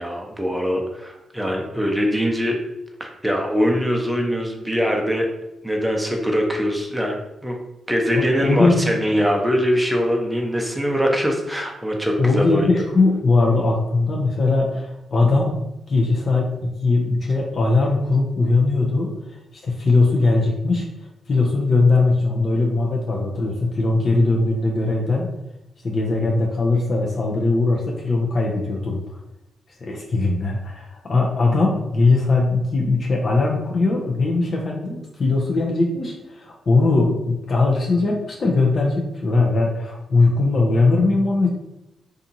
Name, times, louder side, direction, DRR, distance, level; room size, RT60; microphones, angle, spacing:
voice 1, 0.0-2.6 3.0-5.3 5.6-7.6 7.9-12.7, equal, 5° right, 1 dB, 0.6 m, -22 dB
voice 2, 8.1-8.9 12.2-15.5 15.9-20.9 21.3-25.3 25.8-29.2 29.8-41.5, left 3 dB, 50° left, -1 dB, 0.5 m, -20 dB
2.7 x 2.4 x 2.6 m, 0.90 s
cardioid pair, 65°, 0 cm